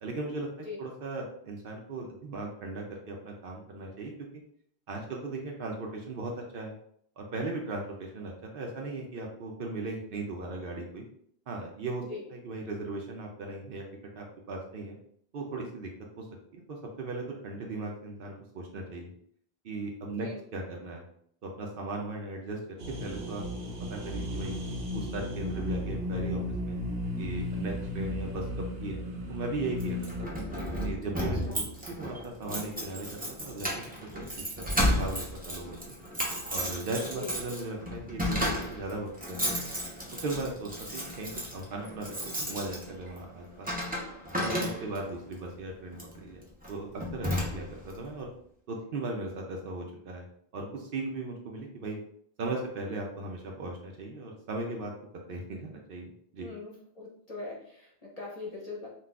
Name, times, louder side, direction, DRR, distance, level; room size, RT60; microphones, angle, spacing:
voice 1, 0.0-0.5 0.8-4.1 4.9-6.7 7.2-11.0 11.5-12.0 12.3-13.8 14.1-15.0 15.3-15.9 16.2-16.3 16.5-19.1 19.6-21.0 21.4-22.6 23.0-24.5 24.9-26.8 27.2-29.0 29.3-30.3 30.8-33.8 34.1-36.0 36.5-39.6 40.2-43.7 44.4-46.4 46.7-48.3 48.7-50.2 50.5-52.0 52.4-54.9 55.3-56.5, right 2 dB, 60° right, 0 dB, 0.7 m, -37 dB
voice 2, 20.1-20.4 31.4-31.6 37.0-37.3 44.9-45.1 56.4-58.9, left 3 dB, 40° left, -4 dB, 0.7 m, -42 dB
sound 1, 22.8-30.2, left 1 dB, 90° right, 0.9 m, -34 dB
Keys jangling, 29.8-45.1 45.9-46.2 46.6-46.7 47.0-47.9, equal, 10° right, 0.5 m, -33 dB
3.9 x 2.3 x 2.3 m, 0.65 s
omnidirectional pair, 1.1 m